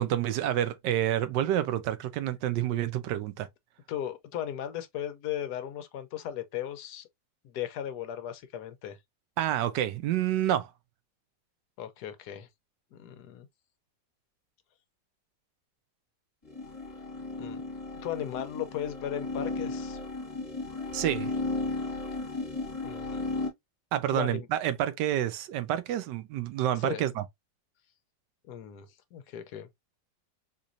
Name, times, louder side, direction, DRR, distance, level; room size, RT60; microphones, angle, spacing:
voice 1, 0.0-3.5 9.4-10.7 20.9-21.3 23.9-27.2, right 12 dB, 90° right, 1.2 m, -28 dB
voice 2, 3.9-7.1 7.4-9.0 11.8-12.5 12.9-13.5 17.4-17.6 18.0-20.0 22.8-23.2 24.1-24.5 26.8-27.0 28.5-29.7, left 10 dB, 70° left, 1.2 m, -37 dB
sound 1, 16.4-23.5, left 3 dB, 20° left, 1.4 m, -35 dB
4.0 x 2.9 x 2.5 m
omnidirectional pair, 1.8 m